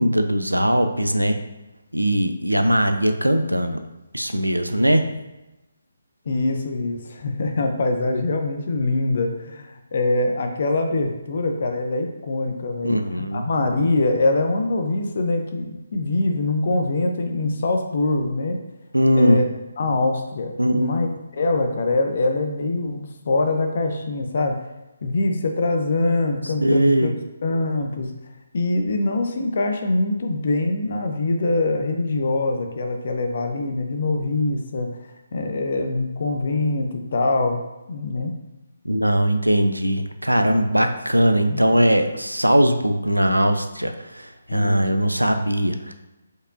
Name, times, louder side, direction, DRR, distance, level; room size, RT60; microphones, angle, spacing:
voice 1, 0.0-1.4 1.9-3.8 4.1-5.1 12.8-13.5 18.9-19.4 20.6-21.0 26.6-27.1 38.8-45.9, equal, 90° right, 7 dB, 0.5 m, -20 dB
voice 2, 6.3-12.9 13.3-18.6 19.1-19.5 19.8-21.1 21.3-24.6 25.0-27.1 27.4-28.1 28.5-34.9 35.3-37.6 37.9-38.3 41.5-41.6 44.5-44.9, left 2 dB, 45° left, 4 dB, 0.5 m, -23 dB
4.8 x 4.3 x 2.5 m, 1.0 s
figure-of-eight pair, 145°, 0 cm